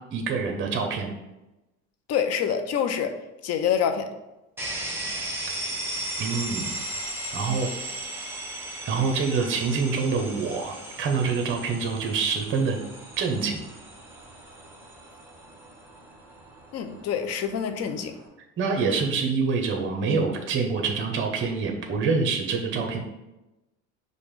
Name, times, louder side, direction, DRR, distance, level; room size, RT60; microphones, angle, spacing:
voice 1, 0.1-1.1 6.2-6.8 7.3-7.7 8.9-12.8 13.2-13.6 18.6-23.0, right 4 dB, 35° right, 2 dB, 0.7 m, -26 dB
voice 2, 2.1-3.1 3.4-4.1 16.7-18.1, left 8 dB, 50° left, 8 dB, 0.5 m, -26 dB
sound 1, 4.6-18.3, right 1 dB, 5° right, 0.9 m, -37 dB
5.0 x 2.2 x 3.1 m, 0.98 s
supercardioid pair, 85°, 34 cm